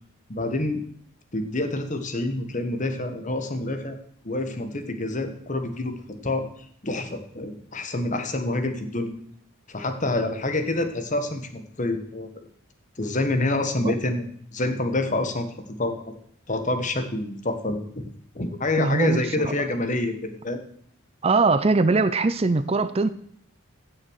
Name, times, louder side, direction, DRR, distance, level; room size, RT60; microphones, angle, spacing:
voice 1, 0.3-0.8 1.3-4.0 4.2-6.5 6.8-9.1 9.7-12.3 13.0-14.2 14.5-15.5 15.8-16.0 16.5-20.6, left 2 dB, 35° left, 8 dB, 1.4 m, -27 dB
voice 2, 18.8-19.5 21.2-23.1, right 3 dB, 30° right, 13 dB, 0.4 m, -21 dB
16.0 x 6.5 x 6.4 m, 0.64 s
head